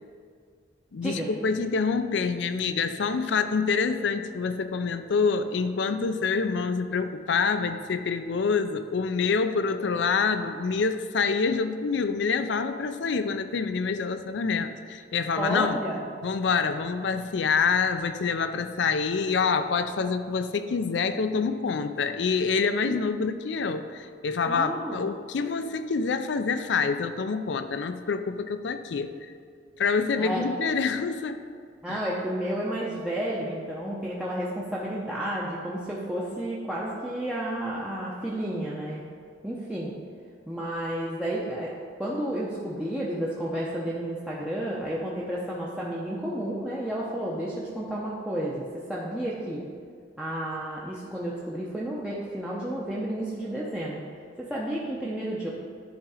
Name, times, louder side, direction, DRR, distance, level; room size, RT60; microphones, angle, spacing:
voice 1, 0.9-15.8 16.2-29.1 29.8-31.4 31.9-32.0, left 5 dB, 75° left, 10 dB, 0.4 m, -26 dB
voice 2, 15.4-16.1 22.9-23.0 24.5-25.1 30.2-30.5 31.8-39.0 39.4-39.9 40.5-41.7 42.0-48.6 48.9-49.6 50.2-54.0 54.5-55.5, right 1 dB, 5° right, -6 dB, 0.6 m, -31 dB
10.5 x 3.7 x 4.8 m, 2.1 s
head